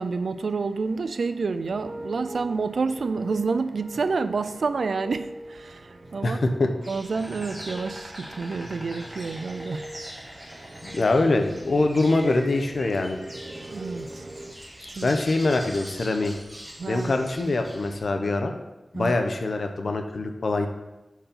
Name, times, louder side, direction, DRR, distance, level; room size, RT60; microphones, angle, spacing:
voice 1, 0.0-6.4 6.9-9.9 10.3-10.6 13.7-14.3 14.9-15.1 16.8-17.1 18.9-19.1, right 4 dB, 85° right, 0.3 m, -29 dB
sound 1, 1.7-14.6, right 1 dB, 45° right, 0.6 m, -42 dB
voice 2, 6.2-6.7 10.8-13.2 15.0-16.3 16.9-18.5 18.9-20.7, left 2 dB, 70° left, 0.7 m, -24 dB
Insect, 6.8-18.0, equal, 10° right, 1.7 m, -43 dB
5.1 x 4.6 x 5.7 m
wide cardioid pair, 90°, 0 cm